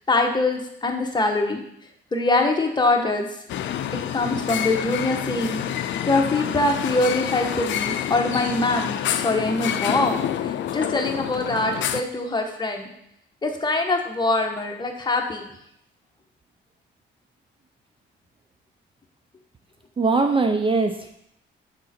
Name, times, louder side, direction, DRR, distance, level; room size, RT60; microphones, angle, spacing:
voice 1, 0.1-1.6 2.1-3.3 4.1-5.6 6.1-9.0 9.2-12.9 13.4-15.5, left 2 dB, 20° left, 2 dB, 1.1 m, -23 dB
sound 1, 3.5-12.0, left 10 dB, 70° left, 0.5 m, -28 dB
voice 2, 20.0-21.1, right 3 dB, 25° right, 6 dB, 0.5 m, -21 dB
7.5 x 3.7 x 4.2 m, 0.75 s
cardioid pair, 90°, 20 cm